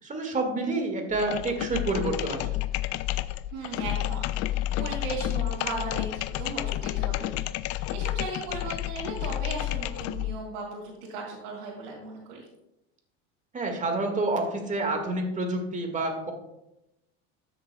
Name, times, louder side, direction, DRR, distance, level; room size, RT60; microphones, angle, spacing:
voice 1, 0.0-2.5 13.5-16.3, right 2 dB, 25° right, 3 dB, 1.9 m, -28 dB
sound 1, 1.1-10.4, left 15 dB, 50° left, 0.4 m, -30 dB
voice 2, 3.5-7.3 7.7-12.4, right 3 dB, 80° right, -5 dB, 2.4 m, -37 dB
13.0 x 7.0 x 2.3 m, 0.90 s
supercardioid pair, 105°, 32 cm